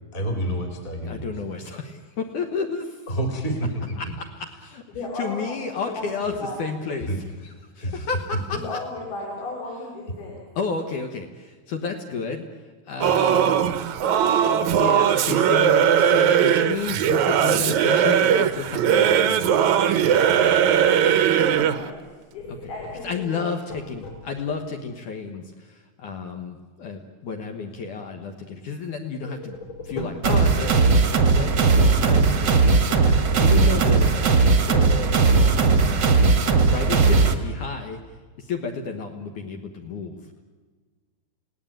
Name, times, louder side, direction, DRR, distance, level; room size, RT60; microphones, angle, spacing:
voice 1, 0.1-1.3 3.1-3.7 4.0-4.1 7.1-7.2 7.8-8.1, right 1 dB, 25° left, 4 dB, 2.9 m, -28 dB
voice 2, 1.0-3.1 4.0-4.8 5.1-8.8 10.6-12.4 12.9-13.7 14.2-21.1 22.5-22.7 23.0-29.6 29.8-30.9 31.2-34.1 34.7-35.2 35.6-36.2 36.7-38.0 38.4-40.2, left 4 dB, 60° left, 3 dB, 2.6 m, -32 dB
voice 3, 4.9-6.6 8.5-10.4 21.6-22.0 22.3-23.5, left 2 dB, 80° left, -1 dB, 6.2 m, -35 dB
Singing / Musical instrument, 13.0-21.9, right 9 dB, 70° right, 1.9 m, -19 dB
sound 1, 22.4-24.7 29.2-31.5, left 2 dB, 45° left, 5.2 m, -39 dB
sound 2, 30.2-37.3, right 4 dB, 45° right, 1.5 m, -18 dB
30.0 x 17.5 x 9.0 m, 1.4 s
omnidirectional pair, 4.4 m